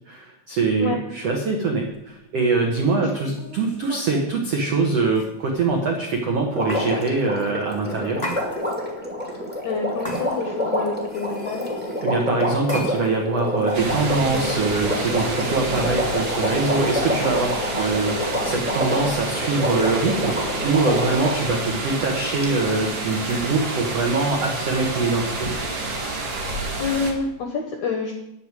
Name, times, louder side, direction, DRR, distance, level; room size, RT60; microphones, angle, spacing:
voice 1, 0.1-8.2 12.0-25.5, right 3 dB, 75° right, 1 dB, 1.4 m, -23 dB
sound 1, 2.7-4.3 5.1-5.7 6.7-6.9 8.2-8.9 10.0-10.6 11.0-12.1 12.7-13.2 13.6-14.9 15.7-16.0 17.0-17.5, equal, 30° left, 0.7 m, -36 dB
Water, 6.5-21.5 22.4-22.5, left 1 dB, 10° right, 0.6 m, -27 dB
voice 2, 9.6-11.7 15.9-16.0 26.3-28.1, left 5 dB, 75° left, 4 dB, 1.8 m, -28 dB
sound 2, 13.7-27.1, right 2 dB, 45° right, 1.6 m, -29 dB
9.9 x 6.5 x 9.0 m, 0.86 s
omnidirectional pair, 5.0 m